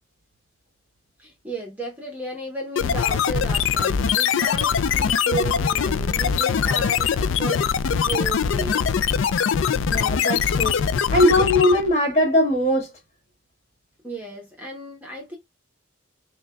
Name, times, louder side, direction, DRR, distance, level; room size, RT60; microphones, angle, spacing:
voice 1, 1.2-8.9 9.4-9.5 14.0-15.4, right 3 dB, 10° right, 0.9 m, -34 dB
sound 1, 2.8-11.9, left 7 dB, 70° left, 0.3 m, -22 dB
voice 2, 9.9-10.8 11.1-12.9, left 1 dB, 35° left, 1.7 m, -20 dB
6.3 x 2.2 x 2.3 m
head